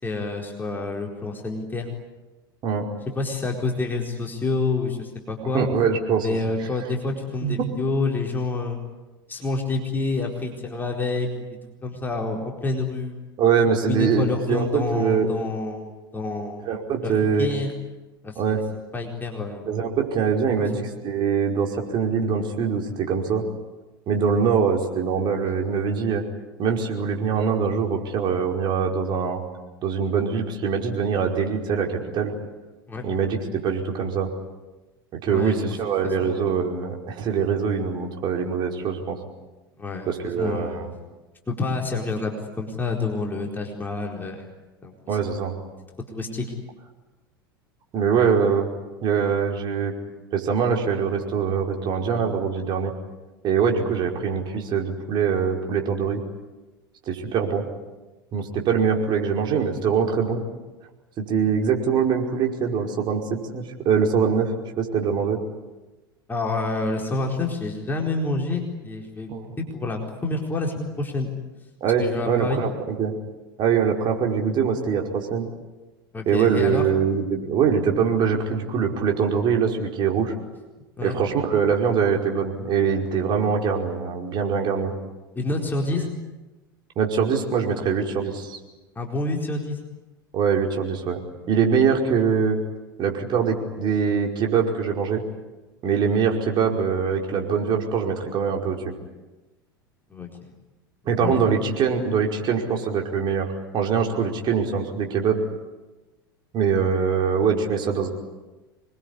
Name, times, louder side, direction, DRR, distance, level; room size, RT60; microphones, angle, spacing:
voice 1, 0.0-1.9 3.1-5.7 6.2-8.8 9.3-11.3 11.8-13.2 13.8-16.7 17.0-17.7 18.2-18.6 18.9-19.7 32.9-33.0 35.3-35.6 35.8-35.9 36.2-36.5 39.8-40.1 40.4-40.8 41.5-44.5 44.8-44.9 46.1-46.4 66.3-71.3 72.0-72.6 76.1-76.9 81.0-81.2 85.3-86.1 89.0-89.8 100.1-100.5 101.2-101.3, left 3 dB, 15° left, 1 dB, 4.4 m, -28 dB
voice 2, 5.5-6.4 7.4-7.6 13.4-15.3 16.7-17.5 18.4-18.6 19.7-23.4 24.1-26.2 26.6-29.4 29.8-32.3 33.0-34.3 35.1-39.2 40.0-40.9 45.1-45.5 47.9-48.7 49.0-49.9 50.3-52.9 53.4-56.2 57.1-57.6 58.3-60.4 61.2-64.5 64.8-65.4 69.3-69.5 71.8-73.1 73.6-75.5 76.3-80.3 81.0-84.9 87.0-88.6 90.3-91.2 91.5-92.6 93.0-95.2 95.8-98.8 101.0-105.4 106.5-108.1, right 6 dB, 40° right, 1 dB, 5.2 m, -23 dB
26.5 x 22.0 x 9.9 m, 1.1 s
figure-of-eight pair, 80°, 12 cm